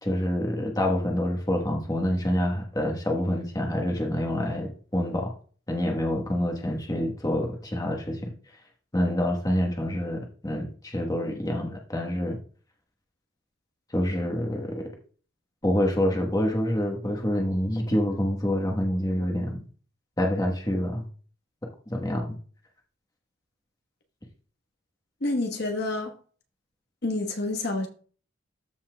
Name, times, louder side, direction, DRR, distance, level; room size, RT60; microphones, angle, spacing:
voice 1, 0.0-5.3 5.7-8.3 8.9-12.4 13.9-14.9 15.6-19.6 20.2-21.1 21.9-22.4, left 1 dB, 15° left, 1.1 m, -27 dB
voice 2, 25.2-26.1 27.0-27.9, left 2 dB, 50° left, 1.1 m, -28 dB
13.5 x 5.5 x 2.2 m
head